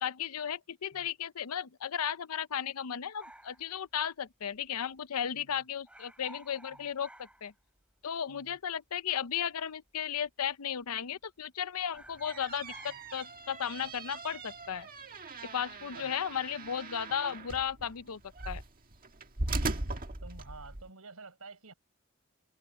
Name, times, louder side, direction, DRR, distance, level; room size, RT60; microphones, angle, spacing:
voice 1, 0.0-7.5 8.0-14.9 15.4-18.2 18.5-18.6, left 8 dB, 85° left, 0.6 m, -35 dB
sound 1, 3.2-4.7 4.9-5.0 5.3-5.5 5.8-8.1 8.4-8.5 9.3-9.9 10.2-10.5 10.8-11.5 11.8-16.4 16.7-17.2, right 1 dB, 5° right, 3.3 m, -55 dB
sound 2, 12.0-20.9, right 2 dB, 40° right, 1.7 m, -39 dB
voice 2, 19.6-19.9 20.2-21.7, right 3 dB, 80° right, 4.9 m, -51 dB
head